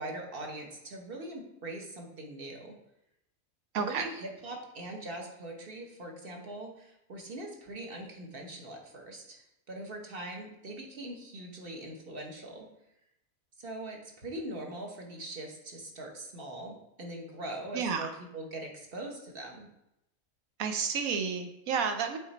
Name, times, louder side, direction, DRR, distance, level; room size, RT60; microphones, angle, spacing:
voice 1, 0.0-2.7 3.8-12.7 13.6-19.7, right 1 dB, 40° right, 1 dB, 1.3 m, -42 dB
voice 2, 3.7-4.1 17.7-18.1 20.6-22.2, right 6 dB, 70° right, 6 dB, 1.2 m, -31 dB
8.3 x 3.8 x 4.1 m, 0.85 s
omnidirectional pair, 1.6 m